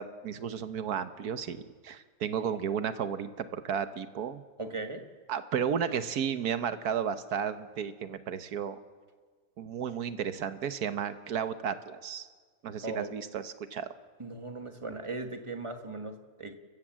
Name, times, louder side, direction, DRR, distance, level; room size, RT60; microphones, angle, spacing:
voice 1, 0.0-4.4 5.3-8.8 9.6-12.3 12.6-13.9, right 7 dB, 70° right, 11 dB, 1.5 m, -33 dB
voice 2, 4.6-5.0 12.8-13.1 14.2-16.6, right 2 dB, 20° right, 6 dB, 1.4 m, -38 dB
30.0 x 15.0 x 7.5 m, 1.5 s
omnidirectional pair, 1.7 m